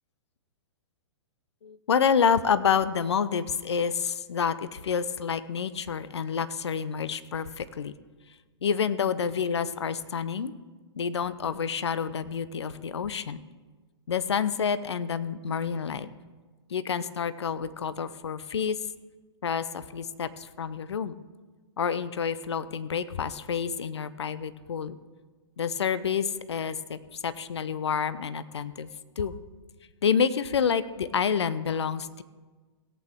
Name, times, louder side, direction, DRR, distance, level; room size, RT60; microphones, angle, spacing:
voice 1, 1.6-7.9 8.6-10.5 11.0-13.4 14.1-16.1 16.7-18.8 19.4-21.2 21.8-25.0 25.6-28.9 29.2-29.4 30.0-32.2, left 7 dB, 65° left, 14 dB, 0.6 m, -28 dB
17.5 x 8.4 x 3.6 m, 1.3 s
figure-of-eight pair, 115°, 15 cm